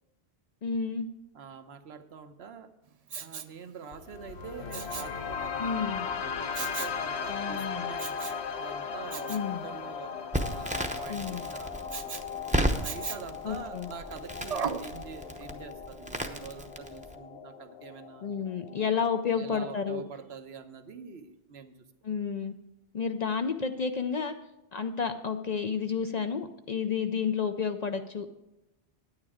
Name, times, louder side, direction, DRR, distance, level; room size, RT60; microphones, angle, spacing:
voice 1, 0.6-1.1 5.6-6.1 7.3-7.9 9.3-9.6 11.1-11.4 13.4-13.9 18.2-20.0 22.0-22.5 22.9-24.4 24.7-28.3, left 6 dB, 50° left, 7 dB, 0.6 m, -31 dB
voice 2, 1.3-9.3 9.6-12.1 12.7-18.3 19.3-21.7, right 6 dB, 75° right, 9 dB, 1.1 m, -46 dB
Respiratory sounds, 3.1-3.6 4.7-5.2 6.5-7.0 8.0-8.4 9.1-9.5 11.9-12.3 12.8-13.4 14.5-14.9 15.4-15.5, right 6 dB, 45° right, 0.5 m, -36 dB
sound 1, 3.9-19.9, left 6 dB, 85° left, 1.1 m, -38 dB
Crackle, 10.3-17.1, equal, 10° right, 0.7 m, -34 dB
9.6 x 9.6 x 4.9 m, 0.97 s
omnidirectional pair, 1.1 m